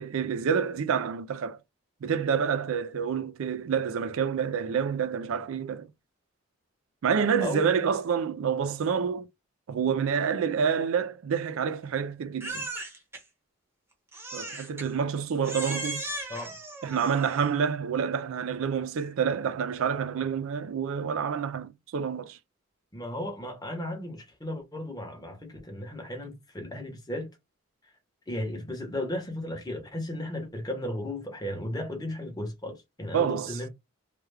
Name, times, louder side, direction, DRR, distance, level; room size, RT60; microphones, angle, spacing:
voice 1, 0.0-1.6 2.0-5.9 7.0-9.3 9.7-12.7 14.3-16.0 16.8-22.4 33.1-33.6, right 7 dB, 70° right, 0.4 m, -28 dB
Crying sobbing, 12.4-13.2 14.1-14.9 15.4-17.6, right 1 dB, 10° right, 0.8 m, -37 dB
voice 2, 22.9-27.3 28.3-33.7, left 1 dB, 15° left, 0.9 m, -35 dB
3.2 x 2.3 x 3.3 m
head